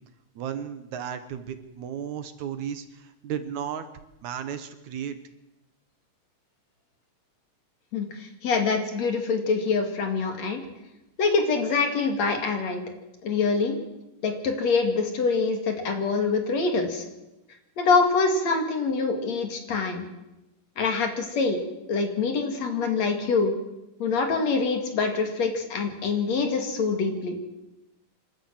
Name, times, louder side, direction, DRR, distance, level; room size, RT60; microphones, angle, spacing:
voice 1, 0.4-3.9 4.2-5.2, right 9 dB, 70° right, 10 dB, 2.4 m, -34 dB
voice 2, 7.9-10.6 11.2-12.8 13.2-13.8 14.2-17.0 17.8-20.0 20.8-21.6 21.9-23.5 24.0-27.4, left 4 dB, 55° left, 5 dB, 3.4 m, -25 dB
26.5 x 12.5 x 7.8 m, 0.96 s
omnidirectional pair, 3.7 m